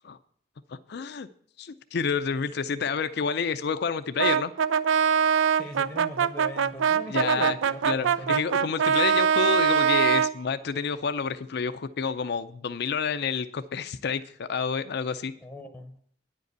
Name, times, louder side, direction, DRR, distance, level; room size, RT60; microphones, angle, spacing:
voice 1, 0.9-1.3 1.6-4.5 7.1-7.6 7.9-15.3, left 6 dB, 60° left, 12 dB, 0.5 m, -29 dB
Brass instrument, 4.2-10.3, right 7 dB, 90° right, 0.4 m, -23 dB
voice 2, 5.5-8.4 15.4-16.0, equal, 5° left, 6 dB, 0.8 m, -40 dB
9.9 x 5.2 x 8.1 m, 0.63 s
head